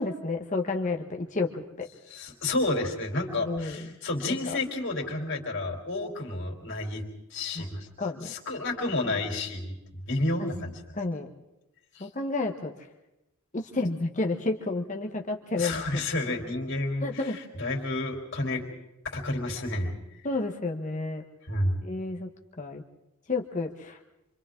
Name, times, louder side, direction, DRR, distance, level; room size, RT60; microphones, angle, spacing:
voice 1, 0.0-1.9 3.4-3.8 4.4-4.6 7.5-7.7 8.0-8.3 11.0-11.3 12.0-12.7 13.5-15.8 17.0-17.4 20.2-21.2 21.8-22.3 22.6-22.8 23.3-24.0, left 3 dB, 35° left, 3 dB, 1.2 m, -30 dB
voice 2, 2.1-7.0 7.3-7.9 8.2-9.7 10.1-10.8 12.0-12.1 15.6-17.3 17.6-18.6 19.0-19.9 21.5-21.7, left 2 dB, 55° left, 1 dB, 3.5 m, -30 dB
28.0 x 25.0 x 3.8 m, 0.93 s
head